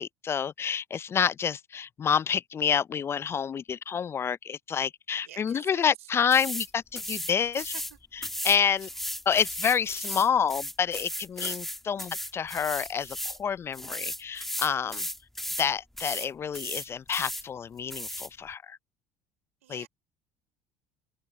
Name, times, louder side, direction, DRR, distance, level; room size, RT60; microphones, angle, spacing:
voice 1, 0.0-7.6 8.1-8.9 9.3-15.1 15.6-18.8 19.7-19.9, left 7 dB, 35° left, 0.5 m, -28 dB
voice 2, 5.2-5.9 7.3-8.0 19.6-19.9, right 13 dB, 80° right, 4.6 m, -48 dB
sound 1, 6.3-6.7 7.0-7.9 8.2-13.4 13.7-15.7 16.0-16.3 16.5-17.4 17.9-18.3, left 1 dB, 5° left, 1.7 m, -35 dB
open air
hypercardioid pair, 65°, 7 cm